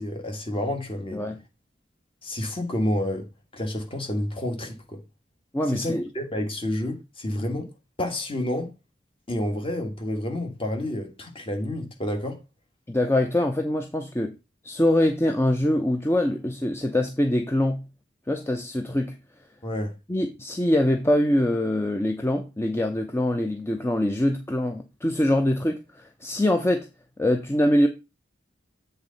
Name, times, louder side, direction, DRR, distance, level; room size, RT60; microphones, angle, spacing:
voice 1, 0.0-1.2 2.2-3.3 3.5-5.0 5.7-7.7 8.0-8.7 9.3-12.4 19.6-19.9, left 1 dB, 30° left, 1.7 m, -29 dB
voice 2, 5.5-6.0 12.9-14.3 14.6-17.8 18.3-19.1 20.1-25.8 26.2-26.9 27.2-27.9, left 1 dB, 15° left, 0.7 m, -23 dB
7.9 x 3.9 x 5.2 m
head